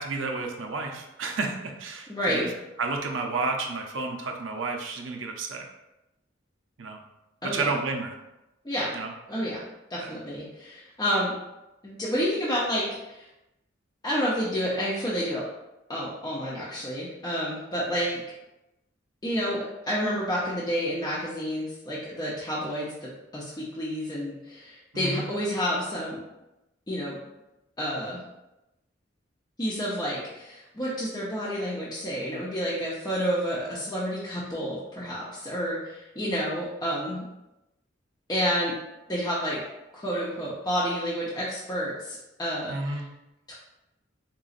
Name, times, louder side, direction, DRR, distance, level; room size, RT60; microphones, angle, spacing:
voice 1, 0.0-2.5 2.8-5.6 6.8-7.0 7.4-8.2 8.9-9.1 10.0-10.1 24.9-25.3 42.7-43.0, right 3 dB, 85° right, 2 dB, 0.6 m, -31 dB
voice 2, 2.1-2.5 7.4-7.7 8.6-8.9 9.3-9.6 9.9-11.4 11.8-13.2 14.0-15.4 15.9-18.2 19.2-26.2 26.9-27.3 27.8-28.2 29.6-37.2 38.3-38.7 39.1-39.6 39.9-43.0 43.5-43.6, equal, 20° left, -7 dB, 0.6 m, -29 dB
4.0 x 3.8 x 2.5 m, 0.95 s
head